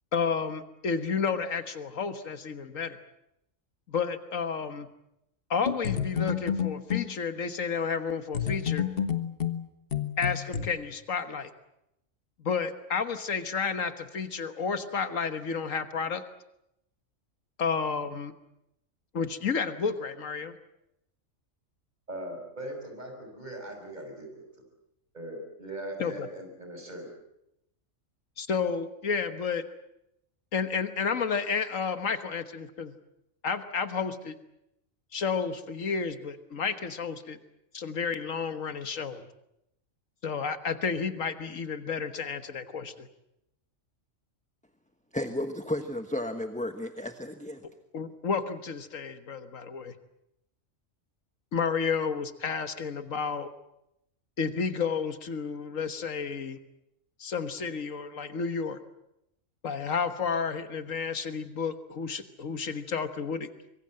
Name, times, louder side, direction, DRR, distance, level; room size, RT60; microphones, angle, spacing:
voice 1, 0.1-3.0 3.9-4.9 5.5-8.9 10.2-11.5 12.4-16.2 17.6-18.3 19.1-20.6 26.0-26.3 28.4-29.6 30.5-33.0 33.4-34.4 35.1-37.4 37.7-39.3 40.2-43.1 47.9-49.9 51.5-53.5 54.4-56.6 57.2-58.8 59.6-63.5, left 5 dB, 75° left, 10 dB, 1.7 m, -31 dB
sound 1, 5.7-7.1 8.3-10.7, left 8 dB, 45° left, 1.5 m, -29 dB
voice 2, 22.1-24.4 25.1-27.1, right 1 dB, 35° right, 3 dB, 6.3 m, -40 dB
voice 3, 45.1-47.6, left 1 dB, 5° left, 7 dB, 1.1 m, -33 dB
25.0 x 23.0 x 7.7 m, 0.83 s
omnidirectional pair, 1.4 m